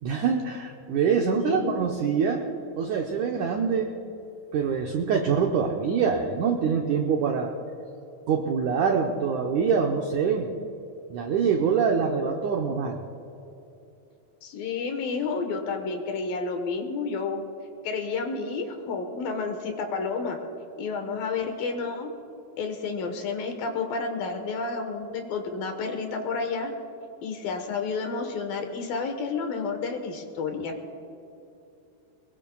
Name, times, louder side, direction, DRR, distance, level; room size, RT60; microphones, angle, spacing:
voice 1, 0.0-2.4 2.8-3.9 4.5-7.5 8.3-10.5 11.1-13.0, right 6 dB, 85° right, 2 dB, 1.7 m, -25 dB
voice 2, 1.2-1.8 14.4-17.4 17.8-20.4 20.8-22.1 22.6-26.7 27.2-30.8, left 4 dB, 70° left, 5 dB, 2.8 m, -30 dB
23.0 x 21.0 x 2.3 m, 2.8 s
omnidirectional pair, 4.7 m